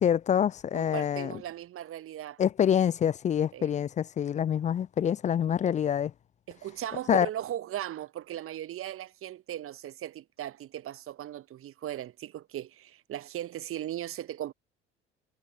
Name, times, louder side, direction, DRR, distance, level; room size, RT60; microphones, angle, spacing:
voice 1, 0.0-1.3 2.4-6.1 7.1-7.3, left 9 dB, 20° left, 0.4 m, -26 dB
voice 2, 0.7-2.4 3.5-3.8 6.5-14.5, right 12 dB, 40° right, 1.1 m, -38 dB
figure-of-eight pair, 60°, 35 cm